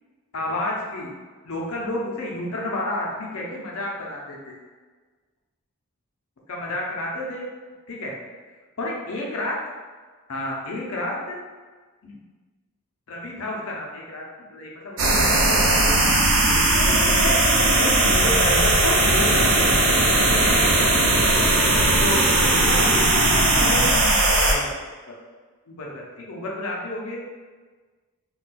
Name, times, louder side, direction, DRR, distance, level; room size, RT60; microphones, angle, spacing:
voice 1, 0.3-1.1 1.4-4.6 6.5-7.5 7.9-8.1 8.8-9.6 10.3-11.4 12.0-12.2 13.1-14.2 14.5-16.6 17.1-17.4 17.8-19.5 20.1-20.8 22.0-23.9 24.2-24.7 25.7-27.2, left 1 dB, 75° left, -2 dB, 0.6 m, -30 dB
sound 1, 15.0-24.5, right 2 dB, 60° right, 0.5 m, -18 dB
4.0 x 2.3 x 2.2 m, 1.4 s
head